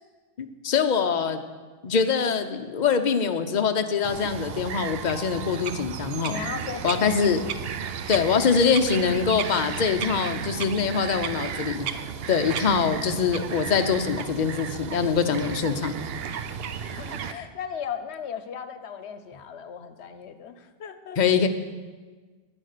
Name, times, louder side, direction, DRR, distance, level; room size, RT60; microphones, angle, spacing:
voice 1, 0.4-1.4 1.8-6.4 6.8-7.4 8.1-11.9 12.3-16.0 21.2-21.5, left 6 dB, 45° left, 7 dB, 0.8 m, -24 dB
Bird vocalization bird call bird song, 4.0-17.3, right 7 dB, 65° right, 0.8 m, -34 dB
voice 2, 6.3-7.1 7.8-7.9 16.8-21.2, left 7 dB, 75° left, 11 dB, 1.0 m, -37 dB
9.9 x 8.6 x 6.6 m, 1.4 s
omnidirectional pair, 1.1 m